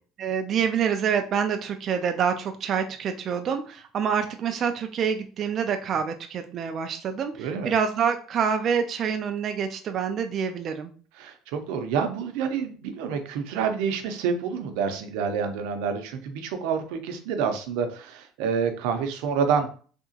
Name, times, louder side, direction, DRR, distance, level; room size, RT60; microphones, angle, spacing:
voice 1, 0.2-10.9, right 7 dB, 40° right, 6 dB, 0.3 m, -27 dB
voice 2, 7.4-7.7 11.2-19.8, right 6 dB, 85° right, 7 dB, 0.6 m, -28 dB
3.4 x 2.8 x 2.7 m, 0.41 s
cardioid pair, 155°, 0 cm